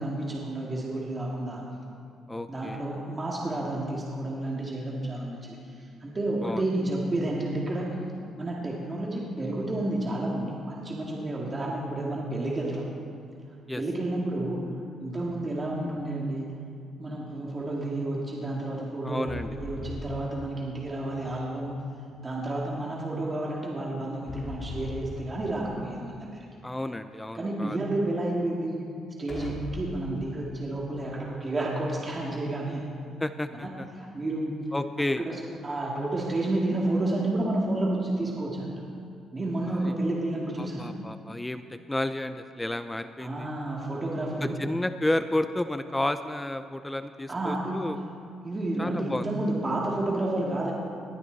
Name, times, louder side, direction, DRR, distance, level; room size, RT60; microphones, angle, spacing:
voice 1, 0.0-1.7 2.5-8.0 8.4-12.8 13.8-14.7 15.0-16.6 17.0-19.3 19.6-21.8 22.2-26.5 27.3-28.8 29.2-32.9 33.6-34.6 35.2-38.8 39.3-40.9 43.2-44.6 47.3-47.8 48.4-50.7, right 1 dB, 30° right, -3 dB, 2.3 m, -30 dB
voice 2, 2.3-2.8 6.4-6.6 13.7-13.8 19.0-19.5 26.6-27.8 33.2-33.9 34.7-35.2 39.8-39.9 40.6-43.5 44.4-48.0 48.8-49.3, left 1 dB, 10° left, 10 dB, 0.5 m, -31 dB
sound 1, 15.2-15.9 19.3-21.0 24.3-25.9 29.3-30.2, left 2 dB, 40° left, 2.4 m, -40 dB
20.0 x 13.5 x 4.1 m, 2.4 s
cardioid pair, 90°, 0 cm